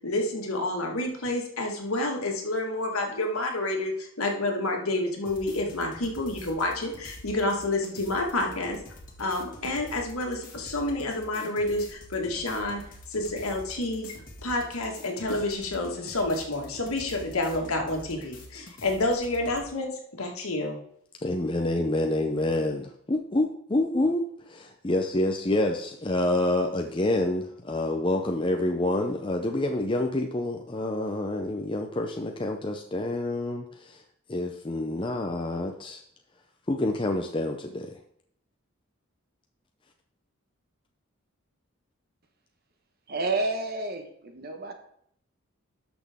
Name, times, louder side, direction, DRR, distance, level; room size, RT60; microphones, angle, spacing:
voice 1, 0.0-8.8 9.2-12.8 13.1-14.1 14.4-20.8, left 2 dB, 85° left, 2 dB, 1.9 m, -29 dB
sound 1, 5.2-19.7, left 1 dB, 40° left, 1.7 m, -46 dB
voice 2, 21.2-34.0 34.3-36.0 36.7-38.0, left 1 dB, 25° left, 3 dB, 0.6 m, -27 dB
voice 3, 43.1-44.7, right 2 dB, 45° right, 5 dB, 1.3 m, -30 dB
12.0 x 6.1 x 3.6 m, 0.68 s
head